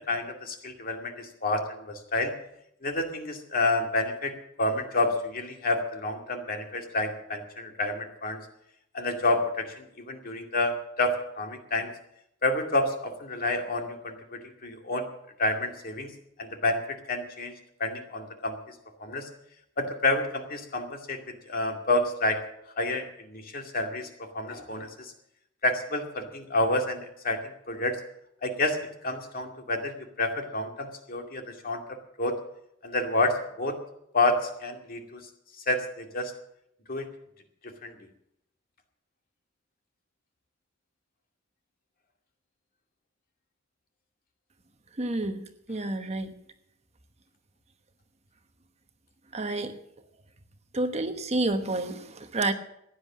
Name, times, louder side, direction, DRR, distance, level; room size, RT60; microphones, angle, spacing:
voice 1, 0.1-2.3 2.8-8.4 8.9-11.9 12.4-15.1 15.4-16.1 16.4-19.3 19.8-22.4 22.8-25.1 25.6-28.0 28.4-28.8 29.0-31.8 32.2-32.4 32.8-33.8 34.1-36.3 36.9-37.1 37.6-38.0, left 2 dB, 50° left, 4 dB, 2.3 m, -29 dB
voice 2, 45.0-46.3 49.3-49.8 50.7-52.5, right 2 dB, 35° right, 8 dB, 1.1 m, -29 dB
15.5 x 10.0 x 7.4 m, 0.78 s
head